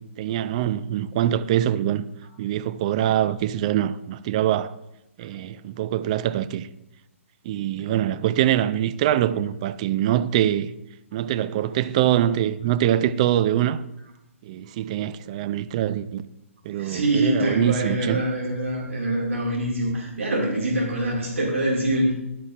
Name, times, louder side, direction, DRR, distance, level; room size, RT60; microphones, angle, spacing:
voice 1, 0.2-2.0 2.4-4.7 5.2-6.7 7.5-10.7 11.1-13.8 14.4-16.2 16.6-18.3, right 12 dB, 30° right, 0.4 m, -24 dB
voice 2, 16.8-22.1, right 1 dB, 65° right, 2.2 m, -24 dB
14.5 x 11.0 x 2.5 m
figure-of-eight pair, 130°, 8 cm